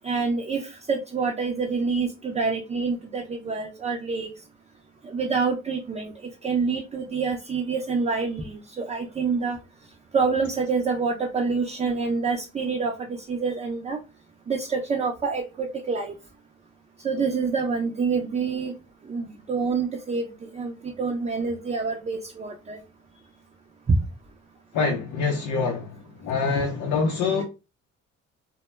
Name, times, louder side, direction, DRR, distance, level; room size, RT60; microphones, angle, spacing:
voice 1, 0.0-4.3 5.0-6.1 6.4-9.6 10.1-14.0 14.5-16.1 17.0-18.7 19.1-20.3 20.5-22.8, right 4 dB, 20° right, 0.5 m, -27 dB
voice 2, 24.7-27.4, left 4 dB, 85° left, 0.6 m, -25 dB
2.1 x 2.1 x 3.0 m
cardioid pair, 90°, 30 cm